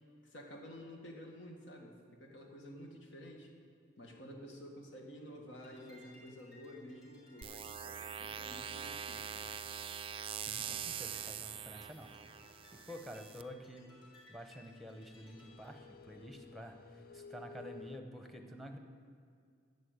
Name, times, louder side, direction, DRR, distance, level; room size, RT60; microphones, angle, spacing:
voice 1, 0.2-3.5 4.0-9.5, equal, 80° left, 1 dB, 1.9 m, -51 dB
sound 1, 5.5-15.7, left 1 dB, 25° left, 3.2 m, -62 dB
sound 2, 7.4-13.4, right 8 dB, 30° right, 0.3 m, -43 dB
voice 2, 10.4-13.9 14.3-18.8, equal, ahead, 5 dB, 0.9 m, -50 dB
sound 3, 11.7-18.0, left 5 dB, 50° left, 0.5 m, -57 dB
12.0 x 7.4 x 8.1 m, 2.2 s
head